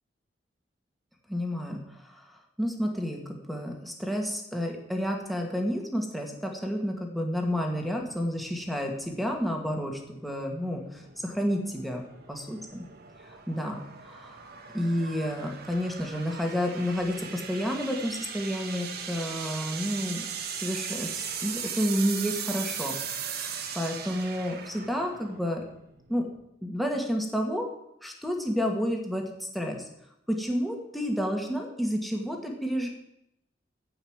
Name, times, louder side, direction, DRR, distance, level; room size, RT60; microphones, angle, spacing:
voice 1, 1.3-1.8 2.1-2.2 2.6-12.0 12.3-12.8 13.5-13.8 14.1-14.4 14.7-20.2 20.6-23.5 23.8-25.6 26.1-26.3 26.6-27.7 28.0-29.8 30.3-32.9, equal, ahead, 0 dB, 2.1 m, -30 dB
sound 1, 7.3-26.4, right 7 dB, 60° right, 1.4 m, -39 dB
14.5 x 5.8 x 8.9 m, 0.81 s
head